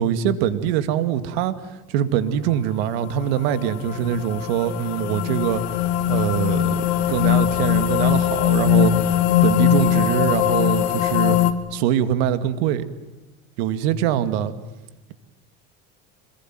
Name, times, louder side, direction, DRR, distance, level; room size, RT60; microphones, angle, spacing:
voice 1, 0.0-1.5 1.9-5.8 6.1-8.9 9.4-11.4 11.7-12.8 13.6-14.5, right 9 dB, 85° right, 11 dB, 2.3 m, -23 dB
sound 1, 3.0-11.5, left 11 dB, 85° left, 2.5 m, -21 dB
26.5 x 22.0 x 9.4 m, 1.1 s
cardioid pair, 135°, 30 cm